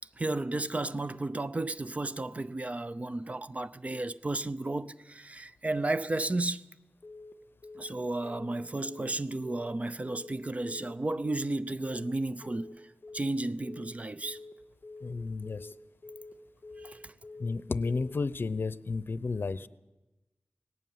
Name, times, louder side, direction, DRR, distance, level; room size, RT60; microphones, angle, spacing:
voice 1, 0.2-6.6 7.8-12.8 13.1-14.4 16.8-17.1, right 2 dB, 35° right, 0.7 m, -33 dB
Telephone, 7.0-7.3 7.6-7.9 8.2-8.5 8.8-9.1 9.4-9.7 10.0-10.3 10.6-10.9 11.2-11.5 11.8-12.1 12.4-12.7 13.0-13.3 13.6-13.9 14.2-14.5 14.8-15.1 15.4-15.7 16.0-16.3 16.6-16.9 17.2-17.5 17.8-18.1, left 3 dB, 45° left, 1.7 m, -47 dB
voice 2, 15.0-15.7 17.4-19.7, left 4 dB, 65° left, 0.7 m, -32 dB
19.0 x 17.0 x 9.3 m
wide cardioid pair, 85°, 4 cm